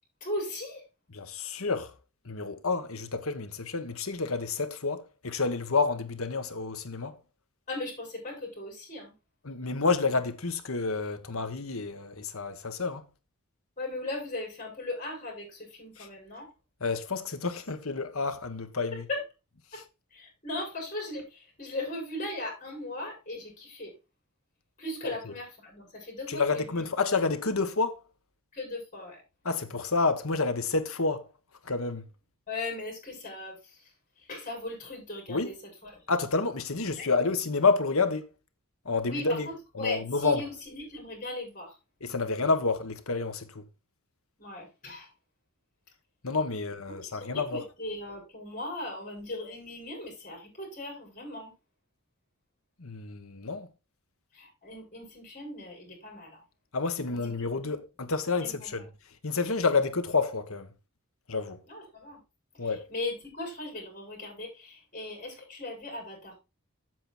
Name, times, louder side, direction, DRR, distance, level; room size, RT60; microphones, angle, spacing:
voice 1, 0.2-0.8 7.7-9.1 13.8-16.5 19.1-19.2 19.7-19.8 20.1-24.0 24.8-26.8 28.5-29.2 32.5-35.5 35.8-36.2 37.0-37.1 39.1-41.8 44.4-45.1 46.9-51.5 54.3-56.4 57.1-57.2 57.5-57.6 58.4-58.7 61.7-62.2 62.6-66.4, left 2 dB, 35° left, 6.4 m, -38 dB
voice 2, 1.1-1.9 2.2-7.2 9.4-13.1 16.0-16.1 16.8-19.0 25.0-25.1 26.3-28.0 29.4-31.3 31.6-32.1 35.3-35.5 36.1-38.3 38.8-39.5 39.7-40.5 42.0-43.6 46.2-47.6 52.8-53.7 56.7-58.9 59.2-60.7 61.3-61.6 62.6-62.9, left 4 dB, 70° left, 1.4 m, -29 dB
7.9 x 7.8 x 4.4 m
head